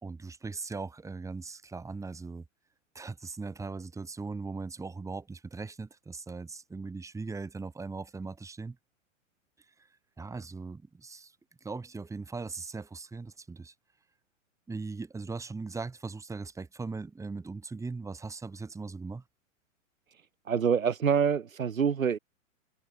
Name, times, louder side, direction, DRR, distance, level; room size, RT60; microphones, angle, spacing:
voice 1, 0.0-2.4 2.9-8.8 10.2-11.3 11.6-13.7 14.7-19.2, right 4 dB, 10° right, 2.7 m, -39 dB
voice 2, 20.5-22.2, right 7 dB, 90° right, 4.8 m, -26 dB
hypercardioid pair, 125°, 39 cm